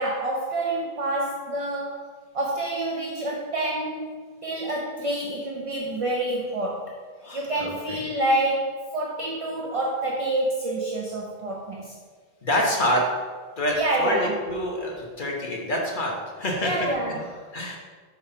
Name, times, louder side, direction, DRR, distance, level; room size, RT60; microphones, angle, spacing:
voice 1, 0.0-6.9 7.3-12.0 13.7-14.4 16.6-17.4, right 1 dB, 35° right, -2 dB, 0.7 m, -28 dB
voice 2, 7.2-8.0 12.4-13.0 13.6-14.2 14.5-16.7 17.1-17.2 17.5-17.8, left 1 dB, 55° left, -2 dB, 1.4 m, -27 dB
5.5 x 4.6 x 5.6 m, 1.5 s
omnidirectional pair, 1.0 m